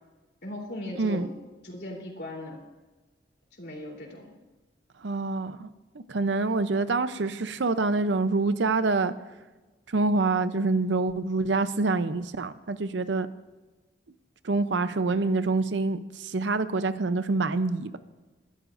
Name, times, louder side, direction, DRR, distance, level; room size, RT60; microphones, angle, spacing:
voice 1, 0.4-1.3 1.6-2.6 3.6-4.3 15.1-15.3, left 1 dB, 60° left, 3.5 m, -38 dB
voice 2, 5.0-5.7 5.9-9.1 9.9-13.3 14.4-18.0, right 3 dB, 80° right, 0.7 m, -26 dB
22.0 x 13.0 x 2.6 m
head